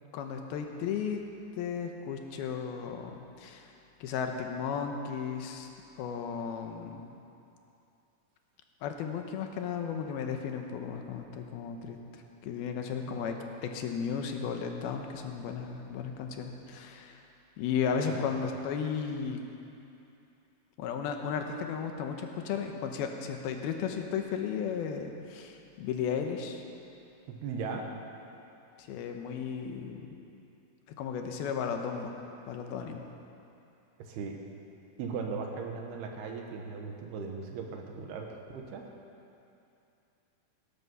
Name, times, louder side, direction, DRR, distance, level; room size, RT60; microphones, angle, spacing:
voice 1, 0.1-1.2 1.6-3.7 4.0-5.7 6.0-7.1 8.8-17.2 17.6-19.4 20.8-26.6 28.8-30.1 31.0-32.1 32.5-33.0, left 7 dB, 80° left, 4 dB, 2.9 m, -34 dB
voice 2, 13.1-13.4 18.0-18.3 27.3-27.9 34.0-34.4 35.0-38.9, right 5 dB, 85° right, 2 dB, 3.4 m, -38 dB
18.0 x 12.0 x 5.6 m, 2.7 s
omnidirectional pair, 4.4 m